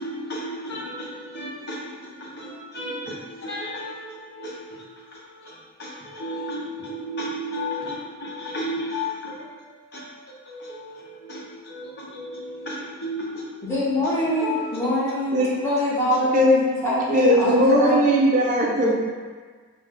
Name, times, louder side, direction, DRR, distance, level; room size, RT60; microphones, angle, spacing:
voice 1, 0.0-5.0 5.4-9.4 9.9-13.4 14.1-14.7, left 1 dB, 50° left, -6 dB, 1.0 m, -33 dB
voice 2, 13.6-17.9 18.8-18.9, equal, 10° left, -9 dB, 1.0 m, -24 dB
voice 3, 17.1-18.9, right 1 dB, 35° right, -2 dB, 0.4 m, -19 dB
5.3 x 2.2 x 3.8 m, 1.5 s
head